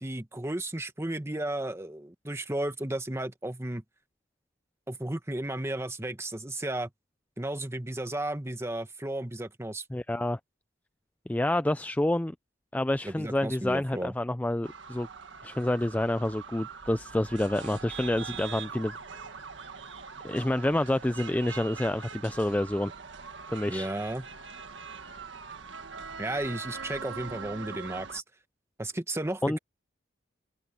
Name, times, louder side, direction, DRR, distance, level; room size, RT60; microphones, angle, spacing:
voice 1, 0.0-3.8 4.9-6.9 7.4-9.8 13.0-14.1 23.7-24.3 26.2-28.2 28.8-29.6, right 1 dB, 15° right, 1.4 m, -34 dB
voice 2, 9.9-10.4 11.3-12.3 12.7-15.1 15.4-19.2 20.2-22.9 23.5-23.9 29.4-29.6, left 1 dB, 10° left, 0.4 m, -28 dB
sound 1, 14.6-28.2, right 5 dB, 75° right, 1.8 m, -42 dB
open air
head